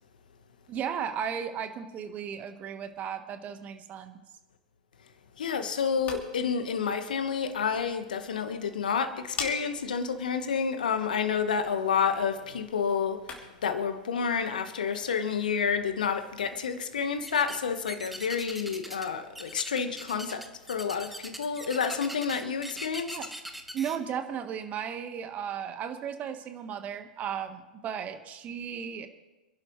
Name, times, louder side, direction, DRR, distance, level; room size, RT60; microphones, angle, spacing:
voice 1, 0.7-4.2 23.1-23.2 23.7-29.1, right 8 dB, 35° right, 1.4 m, -35 dB
voice 2, 5.4-23.2, left 6 dB, 75° left, 1.5 m, -29 dB
sound 1, 5.7-13.7, left 5 dB, 30° left, 3.0 m, -45 dB
sound 2, 17.2-17.6 17.9-19.1 19.3-24.0, right 1 dB, ahead, 1.3 m, -41 dB
27.0 x 11.5 x 3.2 m
figure-of-eight pair, 95°, 5 cm